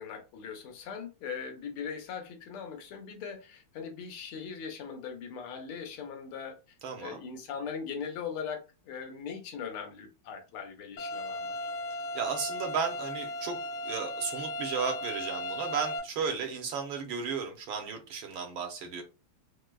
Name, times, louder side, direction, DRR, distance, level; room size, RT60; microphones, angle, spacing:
voice 1, 0.0-6.6 7.0-8.6 8.8-11.6, left 6 dB, 80° left, 1.6 m, -40 dB
voice 2, 6.8-7.2 12.1-13.6 13.8-19.0, right 6 dB, 75° right, 1.5 m, -34 dB
sound 1, 11.0-16.0, left 1 dB, 65° left, 1.0 m, -36 dB
4.5 x 2.1 x 2.2 m
omnidirectional pair, 2.4 m